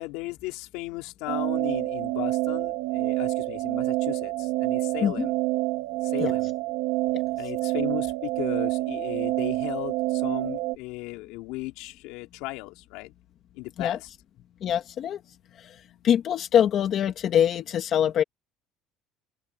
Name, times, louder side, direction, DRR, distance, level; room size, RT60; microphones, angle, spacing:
voice 1, 0.0-4.3 4.6-5.3 6.1-6.5 7.4-9.9 10.2-13.1 13.6-14.0, left 21 dB, 80° left, 3.5 m, -36 dB
sound 1, 1.3-10.8, right 19 dB, 85° right, 2.3 m, -27 dB
voice 2, 14.6-15.2 15.5-18.2, left 9 dB, 40° left, 1.8 m, -24 dB
cardioid pair, 160°, 0 cm